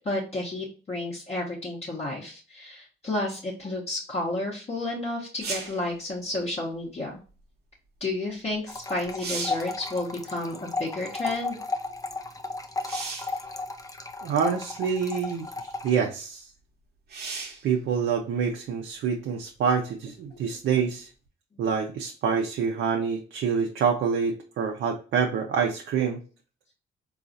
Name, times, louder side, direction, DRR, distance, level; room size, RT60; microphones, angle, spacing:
voice 1, 0.0-7.2 8.0-11.6, left 2 dB, 30° left, -4 dB, 0.9 m, -31 dB
sound 1, 5.4-5.8 8.5-8.6 9.0-9.7 12.8-13.4 14.4-14.5 17.1-17.7 21.3-21.4, right 4 dB, 55° right, 0.9 m, -35 dB
sound 2, 8.7-15.9, left 3 dB, 15° left, 0.5 m, -34 dB
voice 2, 14.2-16.5 17.6-21.1 21.6-26.2, right 6 dB, 70° right, 2 dB, 0.5 m, -26 dB
3.8 x 2.4 x 2.5 m, 0.37 s
cardioid pair, 90°, 20 cm